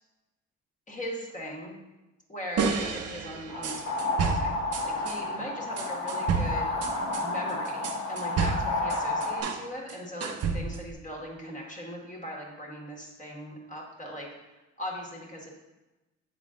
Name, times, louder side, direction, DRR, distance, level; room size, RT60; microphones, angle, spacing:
voice 1, 0.9-1.7 2.3-4.5 4.8-6.7 7.2-14.3 14.8-15.5, equal, 25° left, -2 dB, 1.5 m, -39 dB
sound 1, 2.6-5.2 5.8-9.6 9.9-10.9, right 5 dB, 55° right, 0.7 m, -31 dB
sound 2, 3.5-9.4, left 2 dB, 85° left, 1.3 m, -31 dB
7.3 x 3.8 x 3.7 m, 1.1 s
cardioid pair, 90°, 30 cm